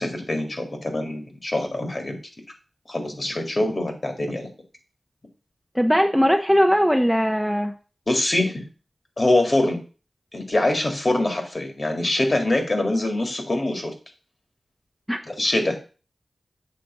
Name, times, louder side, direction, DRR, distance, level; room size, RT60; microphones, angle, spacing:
voice 1, 0.0-2.2 2.9-4.5 8.1-8.7 9.2-9.8 10.3-13.9 15.2-16.0, left 1 dB, 45° left, 4 dB, 2.0 m, -24 dB
voice 2, 5.8-7.7 15.1-15.2, equal, ahead, 4 dB, 0.8 m, -19 dB
7.6 x 3.4 x 6.0 m, 0.35 s
cardioid pair, 50°, 0 cm